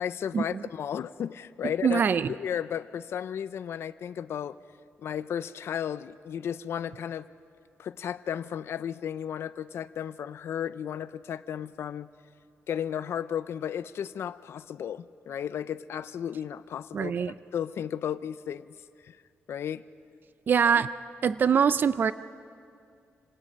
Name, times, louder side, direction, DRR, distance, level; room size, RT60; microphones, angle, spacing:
voice 1, 0.0-2.0 2.3-4.6 5.0-7.3 7.8-12.1 12.7-18.7 19.0-19.2 19.5-19.8, left 9 dB, 70° left, 14 dB, 0.6 m, -34 dB
voice 2, 1.8-2.3 16.9-17.3 20.5-20.9 21.2-22.1, right 7 dB, 45° right, 14 dB, 0.4 m, -23 dB
27.5 x 18.5 x 5.3 m, 2.3 s
wide cardioid pair, 130°, 5 cm